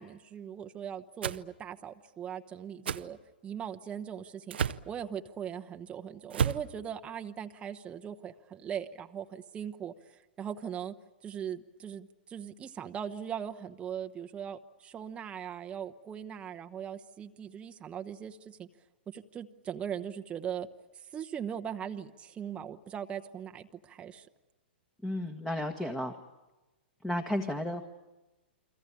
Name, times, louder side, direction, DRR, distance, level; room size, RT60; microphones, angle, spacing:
voice 1, 0.0-3.2 3.4-4.6 4.9-11.0 11.2-18.7 19.1-20.7 21.1-24.3, right 8 dB, 20° right, 6 dB, 1.0 m, -40 dB
sound 1, 1.2-1.4 2.8-3.0 4.5-4.9 6.3-6.7, right 7 dB, 75° right, 0.9 m, -30 dB
voice 2, 25.0-26.1 27.0-27.9, left 1 dB, 5° left, 6 dB, 1.5 m, -33 dB
29.5 x 23.0 x 8.7 m, 1.1 s
hypercardioid pair, 115°, 6 cm